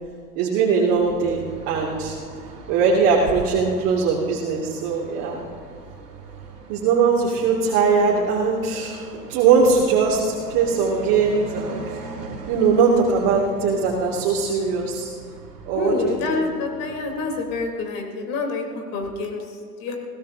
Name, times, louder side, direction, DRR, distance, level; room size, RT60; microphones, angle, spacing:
voice 1, 0.4-2.1 2.7-5.4 6.7-11.9 12.5-15.1 15.7-16.4, right 5 dB, 45° right, -4 dB, 2.6 m, -20 dB
sound 1, 1.0-17.6, right 4 dB, 85° right, 2.7 m, -40 dB
voice 2, 15.7-19.9, left 3 dB, 45° left, 1 dB, 3.8 m, -27 dB
21.5 x 16.5 x 2.8 m, 2.2 s
hypercardioid pair, 100°, 46 cm